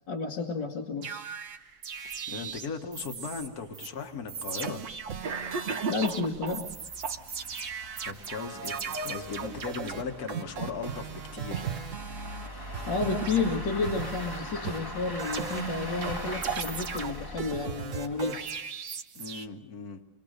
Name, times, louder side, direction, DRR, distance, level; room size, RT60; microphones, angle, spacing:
voice 1, 0.1-1.3 5.9-6.7 12.9-18.5, left 4 dB, 75° left, 0 dB, 2.6 m, -31 dB
sound 1, 1.0-3.5 3.7-3.9 4.3-12.5 12.7-14.4 14.6-19.5, right 6 dB, 50° right, 1.3 m, -37 dB
sound 2, 2.1-2.2 2.5-2.6 3.0-3.1 3.4-3.5 4.2-18.5, left 1 dB, 10° left, 1.7 m, -41 dB
voice 2, 2.3-4.8 8.1-11.6 19.1-20.0, left 5 dB, 55° left, 5 dB, 2.1 m, -38 dB
Cough, 3.5-3.6 4.6-4.7 5.2-6.7 7.0-7.7, right 4 dB, 85° right, 2.3 m, -35 dB
27.0 x 23.0 x 6.7 m, 0.94 s
omnidirectional pair, 1.9 m